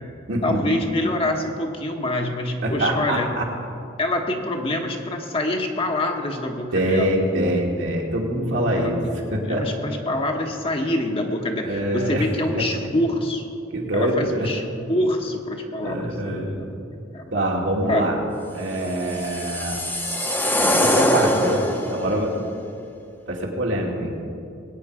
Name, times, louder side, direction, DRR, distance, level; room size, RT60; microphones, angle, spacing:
voice 1, 0.4-3.3 4.0-7.1 8.7-8.9 9.3-13.4 13.9-14.6 14.9-16.7 17.1-17.3 17.9-18.1, left 1 dB, 30° left, 2 dB, 1.1 m, -25 dB
voice 2, 2.6-3.5 6.7-9.0 9.3-9.7 11.6-12.2 12.5-12.6 13.7-14.5 15.8-16.6 17.3-18.2 18.5-19.8 20.6-22.3 23.3-24.2, right 1 dB, 65° right, -1 dB, 2.4 m, -24 dB
sound 1, 18.8-22.0, left 1 dB, 10° left, 0.9 m, -22 dB
20.5 x 9.1 x 4.9 m, 2.6 s
head